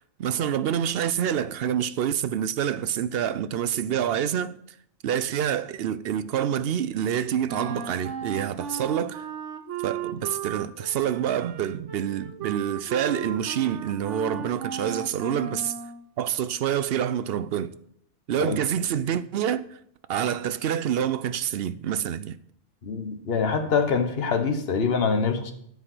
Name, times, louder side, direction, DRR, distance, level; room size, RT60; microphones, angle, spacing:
voice 1, 0.0-4.6 5.0-9.3 9.8-15.7 16.2-17.7 18.3-19.8 20.1-22.4, right 9 dB, 65° right, 0.7 m, -27 dB
Wind instrument woodwind instrument, 7.5-16.1, right 7 dB, 85° right, 1.2 m, -35 dB
voice 2, 22.8-25.5, left 5 dB, 55° left, 1.4 m, -24 dB
13.5 x 4.9 x 6.1 m
omnidirectional pair, 1.2 m